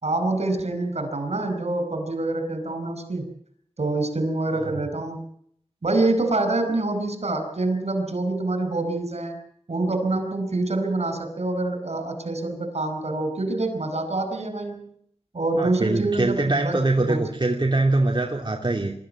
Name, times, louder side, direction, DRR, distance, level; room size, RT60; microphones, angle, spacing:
voice 1, 0.0-3.3 3.8-5.2 5.8-9.4 9.7-14.9 15.3-17.2, right 2 dB, 75° right, 7 dB, 5.3 m, -26 dB
voice 2, 15.6-18.9, right 2 dB, 45° right, 1 dB, 2.8 m, -23 dB
24.5 x 14.0 x 9.0 m, 0.67 s
wide cardioid pair, 65°, 11 cm